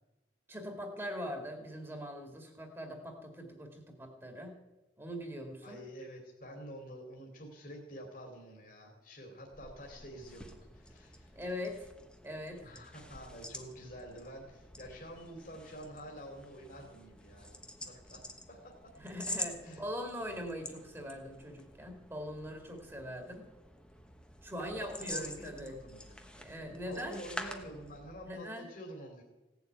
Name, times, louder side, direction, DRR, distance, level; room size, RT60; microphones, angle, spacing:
voice 1, 0.5-4.6 5.0-5.8 11.3-11.9 12.2-12.7 19.0-23.5 24.4-25.8 26.3-27.2 28.2-28.7, equal, 15° right, 3 dB, 2.2 m, -42 dB
voice 2, 5.6-11.4 12.6-18.9 19.6-19.8 24.6-26.2 26.8-29.2, equal, 50° left, 1 dB, 2.8 m, -48 dB
sound 1, 9.4-28.3, left 1 dB, 5° left, 1.2 m, -47 dB
17.0 x 7.1 x 9.2 m, 1.1 s
head